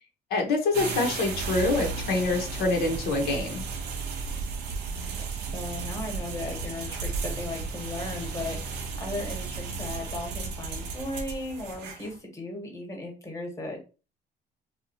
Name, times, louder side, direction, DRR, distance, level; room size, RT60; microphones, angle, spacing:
voice 1, 0.3-3.6, left 3 dB, 70° left, 2 dB, 0.8 m, -26 dB
sound 1, 0.7-12.2, right 4 dB, 85° right, 0.7 m, -34 dB
voice 2, 4.8-5.3 5.5-13.8, left 2 dB, 20° left, 1 dB, 1.1 m, -36 dB
2.8 x 2.3 x 2.7 m, 0.33 s
cardioid pair, 110°, 17 cm